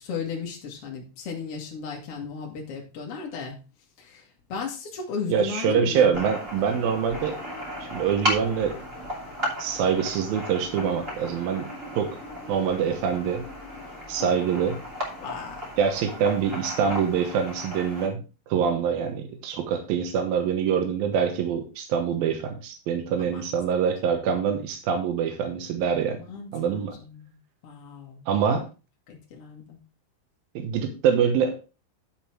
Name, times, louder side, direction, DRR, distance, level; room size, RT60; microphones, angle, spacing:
voice 1, 0.0-3.6 4.0-6.2 6.6-6.8 14.2-14.3 15.2-15.6 23.2-23.4 26.1-27.4 27.6-28.2 29.1-29.8, left 5 dB, 80° left, 0 dB, 1.2 m, -35 dB
voice 2, 5.3-7.4 7.8-8.8 9.6-11.7 11.9-12.1 12.5-13.4 14.1-14.8 15.8-26.2 26.5-26.9 28.3-28.6 30.6-31.6, right 7 dB, 75° right, 5 dB, 2.2 m, -25 dB
sound 1, 6.1-18.1, equal, 20° right, 1.8 m, -35 dB
11.0 x 5.4 x 4.5 m, 0.32 s
omnidirectional pair, 5.8 m